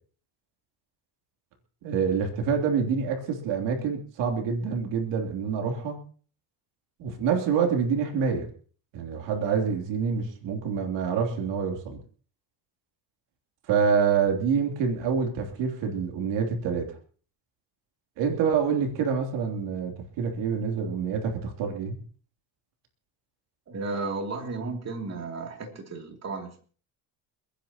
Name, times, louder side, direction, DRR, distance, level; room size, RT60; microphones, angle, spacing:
voice 1, 1.8-6.0 7.0-8.5 8.9-12.0 13.7-16.9 18.2-22.0, right 6 dB, 90° right, 2 dB, 3.3 m, -26 dB
voice 2, 23.7-26.6, right 3 dB, 35° right, 2 dB, 3.0 m, -34 dB
30.0 x 10.0 x 3.0 m, 0.42 s
cardioid pair, 130°, 42 cm